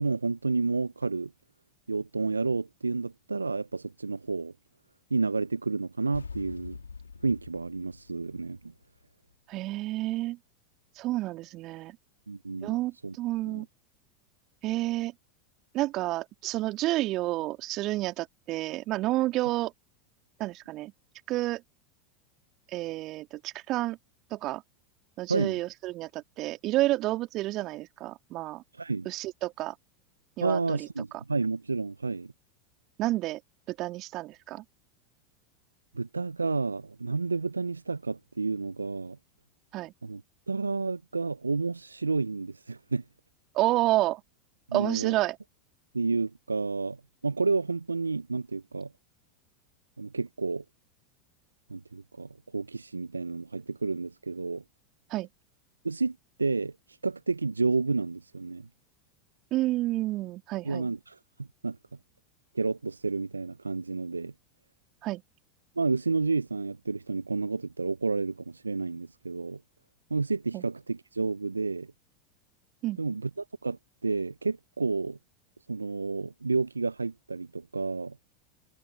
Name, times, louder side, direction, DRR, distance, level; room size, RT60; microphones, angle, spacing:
voice 1, 0.0-1.3 1.9-4.5 5.1-6.8 7.2-8.7 12.3-12.8 13.0-13.1 13.5-13.6 25.3-25.6 28.8-29.1 30.4-32.3 35.9-39.2 40.0-40.2 40.5-43.0 44.7-45.2 45.9-47.0 47.2-48.9 50.0-50.6 51.7-54.6 55.8-56.7 57.0-58.7 60.6-61.8 62.5-64.3 65.8-69.6 70.1-71.9 73.0-75.2 75.7-78.2, right 4 dB, 85° right, 0.8 m, -30 dB
sound 1, 6.1-9.1, left 5 dB, 80° left, 3.4 m, -44 dB
voice 2, 9.5-10.4 11.0-12.0 12.6-13.7 14.6-15.1 15.7-19.7 20.4-20.9 21.3-21.6 22.7-24.0 24.3-24.6 25.2-28.6 29.1-29.8 30.4-30.9 33.0-33.4 33.7-34.6 39.7-39.9 43.5-44.2 44.7-45.4 55.1-55.3 59.5-60.9 65.0-65.2 70.5-70.6 72.8-73.2, right 17 dB, 45° right, 3.5 m, -30 dB
figure-of-eight pair, 85°, 0 cm